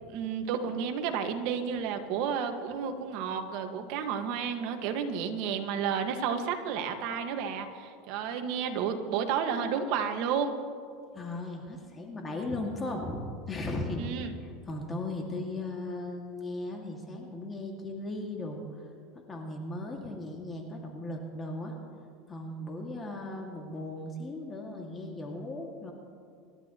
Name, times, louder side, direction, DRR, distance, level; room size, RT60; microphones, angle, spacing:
voice 1, 0.1-10.6 14.0-14.3, right 7 dB, 60° right, 5 dB, 1.6 m, -31 dB
voice 2, 11.1-14.0 14.4-18.6 19.3-21.8 22.3-25.9, left 2 dB, 20° left, 1 dB, 2.0 m, -37 dB
26.5 x 12.0 x 3.0 m, 2.3 s
supercardioid pair, 120°, 0 cm